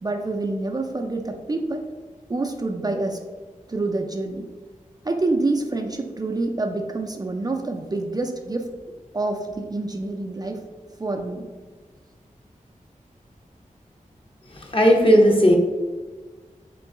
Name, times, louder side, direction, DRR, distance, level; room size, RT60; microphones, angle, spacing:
voice 1, 0.0-1.9 2.3-3.2 3.7-4.5 5.0-8.7 9.1-10.6 11.0-11.5, right 2 dB, 30° right, 3 dB, 0.4 m, -27 dB
voice 2, 14.5-15.5, equal, 40° left, 1 dB, 0.7 m, -16 dB
3.7 x 3.0 x 3.6 m, 1.4 s
wide cardioid pair, 60°, 14 cm